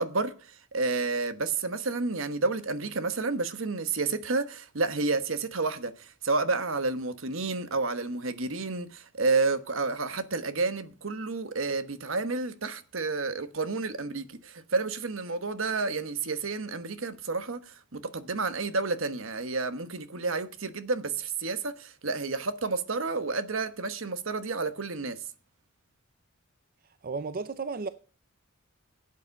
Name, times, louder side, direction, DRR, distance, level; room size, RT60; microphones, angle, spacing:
voice 1, 0.0-25.2, right 3 dB, 65° right, 1.1 m, -30 dB
voice 2, 26.8-27.9, right 4 dB, 45° right, 0.6 m, -34 dB
11.5 x 8.5 x 6.4 m
head